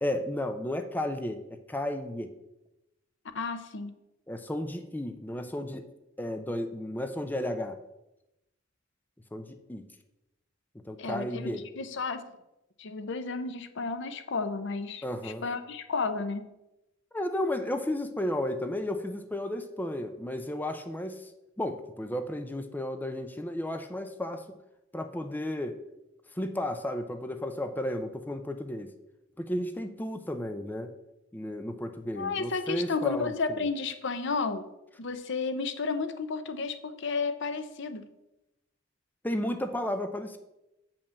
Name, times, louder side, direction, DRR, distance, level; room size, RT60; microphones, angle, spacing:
voice 1, 0.0-1.4 1.7-2.3 4.3-5.9 6.2-7.8 9.3-9.9 10.9-11.6 15.0-15.4 17.1-21.3 21.6-24.6 24.9-25.8 26.3-28.9 29.4-30.9 31.3-33.3 39.2-40.4, left 1 dB, 10° left, 7 dB, 0.5 m, -33 dB
voice 2, 3.3-3.9 11.0-12.2 12.8-16.4 32.2-34.7 35.0-38.0, left 4 dB, 65° left, 10 dB, 0.7 m, -32 dB
7.0 x 5.3 x 7.0 m, 0.92 s
head